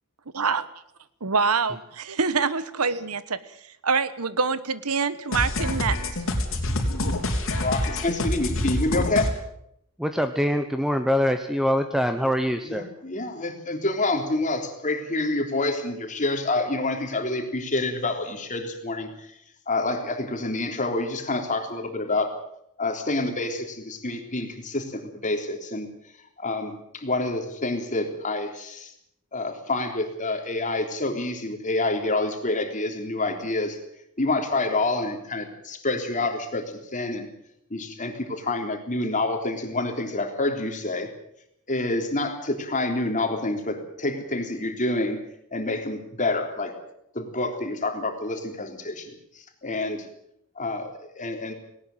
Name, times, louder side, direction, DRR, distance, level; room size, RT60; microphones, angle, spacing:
voice 1, 1.2-3.2 3.5-3.6 3.8-6.0, right 5 dB, 90° right, 1.3 m, -25 dB
sound 1, 5.3-9.3, left 1 dB, 65° left, 3.8 m, -26 dB
voice 2, 7.4-9.3 12.7-19.3 19.7-22.3 22.8-25.9 26.4-28.9 29.3-33.8 34.2-37.3 37.7-41.1 41.7-45.2 45.5-46.8 47.1-50.1 50.6-51.5, left 2 dB, 35° left, 3.5 m, -28 dB
voice 3, 10.0-12.9, equal, ahead, 1.0 m, -24 dB
19.0 x 18.5 x 8.0 m
head